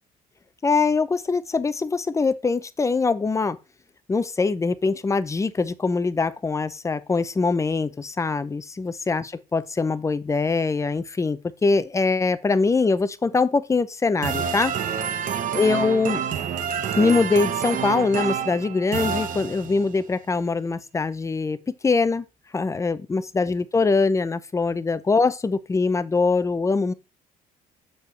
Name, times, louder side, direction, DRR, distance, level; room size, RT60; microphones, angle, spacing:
voice 1, 0.6-3.6 4.1-14.7 15.1-16.2 16.9-21.6 21.8-22.2 22.5-26.9, left 4 dB, 20° left, 0.6 m, -23 dB
sound 1, 14.2-19.9, right 7 dB, 55° right, 1.1 m, -28 dB
6.7 x 6.7 x 3.2 m
cardioid pair, 100°, 16 cm